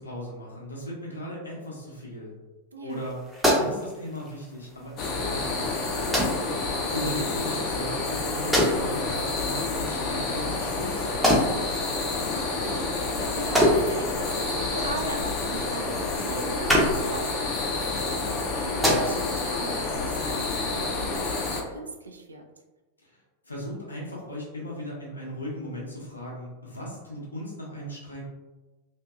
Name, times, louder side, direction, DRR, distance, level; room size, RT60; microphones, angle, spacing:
voice 1, 0.0-2.3 2.8-3.2 3.6-6.2 6.9-11.4 23.0-23.2 23.4-28.3, equal, 75° left, -4 dB, 0.7 m, -37 dB
voice 2, 2.7-3.1 11.9-22.4, right 2 dB, 75° right, 4 dB, 0.3 m, -38 dB
sound 1, 2.9-19.6, equal, 5° right, 0.7 m, -29 dB
sound 2, 5.0-21.6, left 3 dB, 35° left, 0.5 m, -29 dB
2.6 x 2.5 x 2.3 m, 1.2 s
figure-of-eight pair, 90°, 0 cm